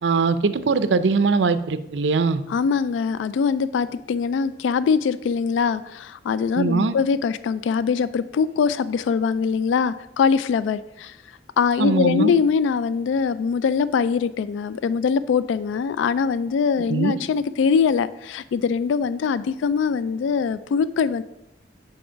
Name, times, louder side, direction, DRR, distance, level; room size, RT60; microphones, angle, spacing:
voice 1, 0.0-2.4 6.6-6.9 11.8-12.4 16.9-17.2, right 4 dB, 75° right, 12 dB, 0.5 m, -21 dB
voice 2, 2.5-11.2 11.6-21.2, left 6 dB, 85° left, 16 dB, 0.3 m, -22 dB
7.7 x 4.7 x 5.6 m, 0.87 s
head